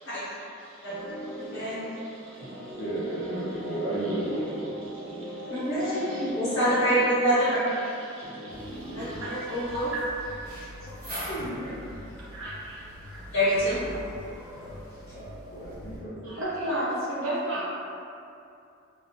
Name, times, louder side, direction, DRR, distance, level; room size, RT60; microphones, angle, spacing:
voice 1, 0.0-2.8 3.3-4.2 4.6-6.5 7.8-10.7 11.1-11.3 11.6-13.2 16.2-17.6, right 1 dB, 70° right, -8 dB, 0.8 m, -37 dB
sound 1, 0.9-9.4, equal, ahead, 0.4 m, -39 dB
voice 2, 1.3-1.8 5.5-7.6 8.8-9.9 13.3-13.8, equal, 65° left, -14 dB, 1.0 m, -26 dB
voice 3, 2.8-4.7 8.8-9.0 11.3-11.8 15.1-16.4, right 1 dB, 45° left, -7 dB, 0.6 m, -33 dB
sound 2, 8.5-16.0, equal, 40° right, 0.8 m, -42 dB
2.6 x 2.0 x 2.8 m, 2.6 s
head